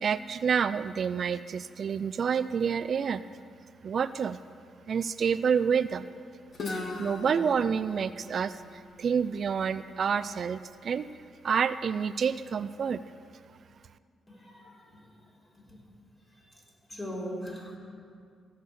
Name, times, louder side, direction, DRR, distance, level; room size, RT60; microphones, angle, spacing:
voice 1, 0.0-3.2 3.8-4.4 4.9-6.1 6.7-11.1 11.4-13.0, right 6 dB, 55° right, 14 dB, 0.3 m, -28 dB
Guitar, 6.5-10.3, left 2 dB, 55° left, 1.7 m, -40 dB
voice 2, 14.3-15.0 16.9-17.8, equal, 25° left, -3 dB, 3.5 m, -39 dB
15.5 x 6.4 x 6.9 m, 2.2 s
cardioid pair, 65°, 0 cm